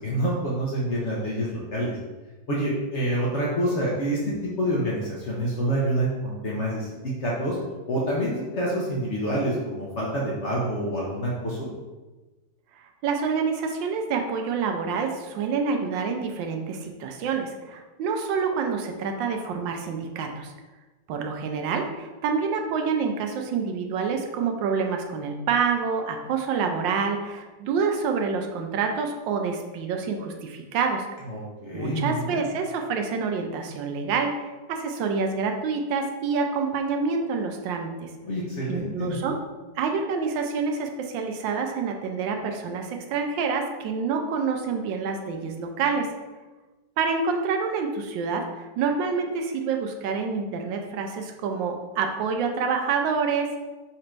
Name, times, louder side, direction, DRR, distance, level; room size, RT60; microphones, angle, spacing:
voice 1, 0.0-2.0 2.5-7.6 7.9-11.7 31.3-32.4 38.2-39.2, right 1 dB, 55° left, -4 dB, 0.8 m, -27 dB
voice 2, 13.0-20.5 21.1-31.1 31.7-38.1 38.7-39.3 39.8-46.1 47.0-53.5, right 5 dB, 90° right, 4 dB, 1.3 m, -27 dB
4.2 x 2.5 x 4.4 m, 1.2 s
omnidirectional pair, 2.0 m